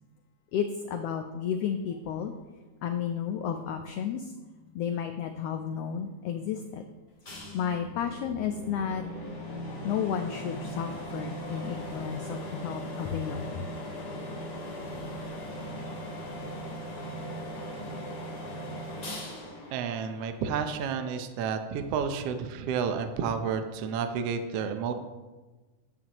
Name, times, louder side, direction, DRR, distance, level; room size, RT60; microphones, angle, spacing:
voice 1, 0.5-2.3 2.8-4.3 4.7-6.8 7.2-9.1 9.8-13.6, left 8 dB, 90° left, 6 dB, 1.3 m, -32 dB
sound 1, 7.3-20.8, equal, 25° left, 2.1 m, -39 dB
voice 2, 19.7-24.9, right 6 dB, 70° right, 7 dB, 1.5 m, -31 dB
13.5 x 9.4 x 3.0 m, 1.2 s
omnidirectional pair, 3.5 m